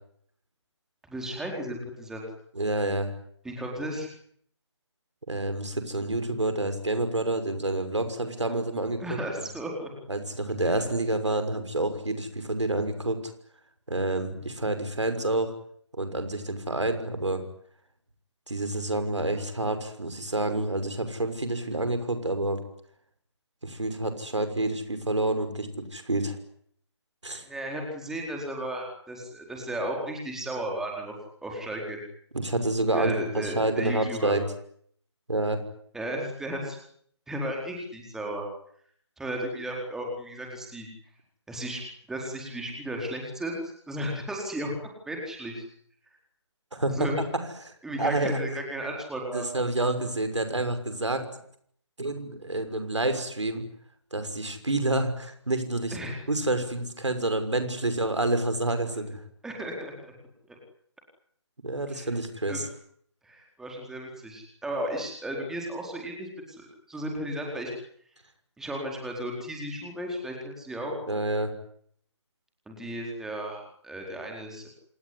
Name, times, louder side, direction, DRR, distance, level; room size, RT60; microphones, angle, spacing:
voice 1, 1.1-2.2 3.4-4.1 9.0-9.9 27.4-31.1 31.4-32.0 32.9-34.3 35.9-36.8 37.3-38.5 39.2-40.9 41.5-41.8 42.1-43.6 43.9-44.8 45.1-45.6 46.9-47.2 47.8-49.4 55.9-56.2 59.4-60.1 60.5-60.6 61.9-62.1 62.5-62.6 63.2-67.7 68.6-70.9 72.7-74.7, right 1 dB, 5° right, 0 dB, 4.5 m, -34 dB
voice 2, 2.5-3.1 5.3-9.2 10.1-13.2 13.9-15.5 15.9-17.4 18.5-22.6 23.6-26.4 27.2-27.4 32.3-34.4 35.3-35.6 46.7-47.1 47.7-47.8 48.0-48.4 49.3-51.2 52.0-53.6 54.1-56.0 56.3-59.2 61.6-62.7 71.1-71.5, right 2 dB, 80° right, 9 dB, 6.2 m, -28 dB
27.0 x 20.5 x 9.9 m, 0.66 s
figure-of-eight pair, 150°, 15 cm